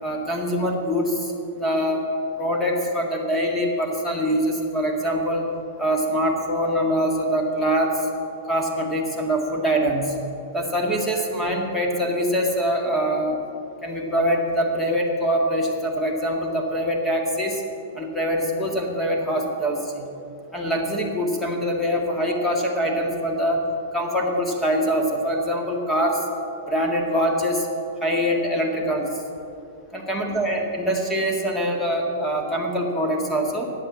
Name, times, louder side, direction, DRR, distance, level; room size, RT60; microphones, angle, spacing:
voice 1, 0.0-1.3 1.6-2.0 2.4-5.4 5.8-8.1 8.5-10.1 10.5-13.4 13.8-17.6 18.0-20.1 20.5-23.6 23.9-26.2 26.7-27.7 28.0-29.1 29.9-33.7, equal, 10° left, 0 dB, 1.9 m, -24 dB
11.5 x 8.8 x 7.4 m, 2.8 s
hypercardioid pair, 145°, 0 cm